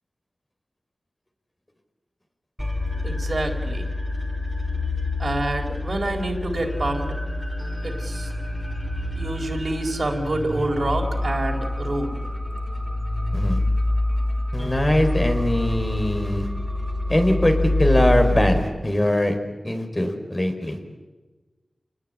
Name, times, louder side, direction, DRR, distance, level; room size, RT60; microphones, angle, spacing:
sound 1, 2.6-18.6, left 1 dB, 5° left, 5.0 m, -26 dB
voice 1, 3.0-3.8 5.2-7.1 7.8-8.3 9.1-12.2, right 2 dB, 60° right, 2 dB, 4.3 m, -27 dB
voice 2, 14.5-16.5 17.1-19.4 19.6-20.8, left 1 dB, 25° left, 5 dB, 4.6 m, -22 dB
29.0 x 19.5 x 8.9 m, 1.2 s
wide cardioid pair, 55°, 0 cm